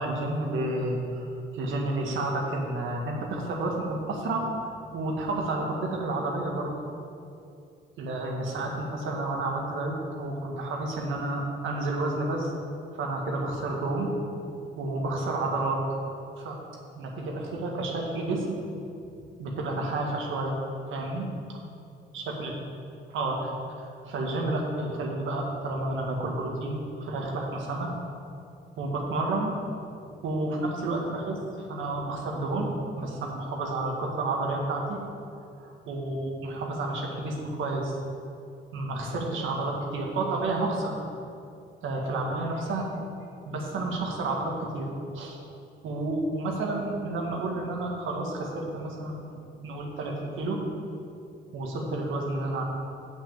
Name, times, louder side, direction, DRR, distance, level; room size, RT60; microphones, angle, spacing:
voice 1, 0.0-6.7 8.0-12.5 12.9-14.1 14.8-15.8 16.4-16.6 17.0-18.6 19.4-20.6 20.9-21.3 22.1-22.6 23.1-23.5 23.8-27.9 28.8-29.5 30.2-32.7 33.0-35.0 35.6-38.0 38.7-41.0 41.8-42.9 43.5-44.9 45.1-45.4 45.8-49.4 49.6-50.6 51.5-52.6, right 2 dB, 80° right, -1 dB, 1.8 m, -30 dB
8.1 x 6.5 x 7.3 m, 2.6 s
cardioid pair, 90°, 20 cm